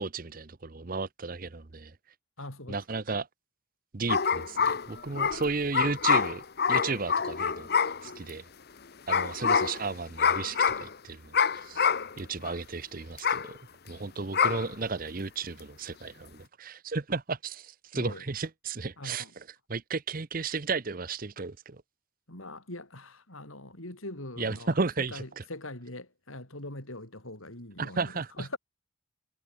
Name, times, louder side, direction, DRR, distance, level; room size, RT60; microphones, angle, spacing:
voice 1, 0.0-1.9 2.7-3.3 3.9-6.4 6.7-7.7 8.0-8.4 9.1-11.9 12.2-13.6 13.9-21.8 24.4-25.4 27.8-28.5, right 4 dB, 40° right, 0.8 m, -34 dB
voice 2, 2.4-2.8 17.9-18.2 19.0-19.3 22.3-24.7 25.1-28.6, left 1 dB, 75° left, 7.0 m, -42 dB
sound 1, 4.1-8.3 9.1-9.9 10.2-10.9 11.3-12.1 12.4-12.5 13.2-13.5 14.3-14.7, left 6 dB, 50° left, 0.8 m, -26 dB
head